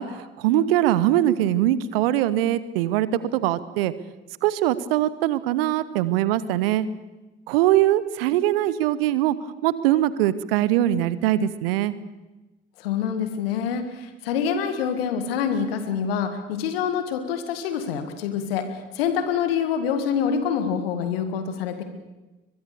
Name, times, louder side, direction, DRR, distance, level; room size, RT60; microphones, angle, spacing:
voice 1, 0.0-3.9 4.4-6.9 7.5-9.4 9.6-11.9, right 13 dB, 75° right, 17 dB, 0.9 m, -22 dB
voice 2, 12.8-21.8, left 7 dB, 80° left, 9 dB, 2.0 m, -26 dB
22.0 x 22.0 x 7.0 m, 1.1 s
figure-of-eight pair, 40°, 29 cm